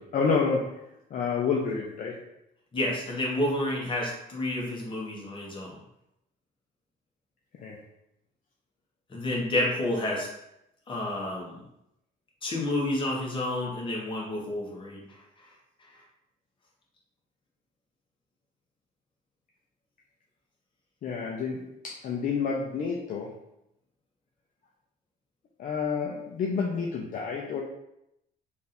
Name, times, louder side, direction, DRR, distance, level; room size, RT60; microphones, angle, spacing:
voice 1, 0.0-2.2 7.6-7.8 21.0-23.3 25.6-27.6, left 5 dB, 50° left, -1 dB, 0.6 m, -29 dB
voice 2, 2.7-5.8 9.1-10.3 10.9-11.6 12.4-15.0, left 1 dB, 30° left, -2 dB, 1.3 m, -30 dB
3.5 x 2.6 x 4.3 m, 0.82 s
cardioid pair, 110°, 17 cm